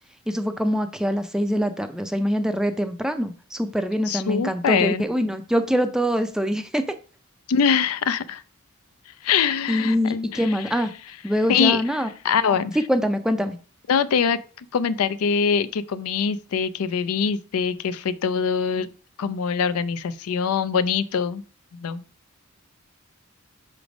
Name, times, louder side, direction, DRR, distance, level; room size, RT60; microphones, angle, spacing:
voice 1, 0.3-6.9 9.7-10.9 11.2-12.1 12.7-13.6, equal, 5° right, 0.4 m, -24 dB
voice 2, 4.1-5.0 7.5-8.4 9.2-10.5 11.5-11.8 12.2-12.8 13.9-14.4 14.7-18.9 19.2-21.4 21.7-22.0, left 6 dB, 80° left, 0.4 m, -23 dB
6.0 x 3.2 x 5.1 m
head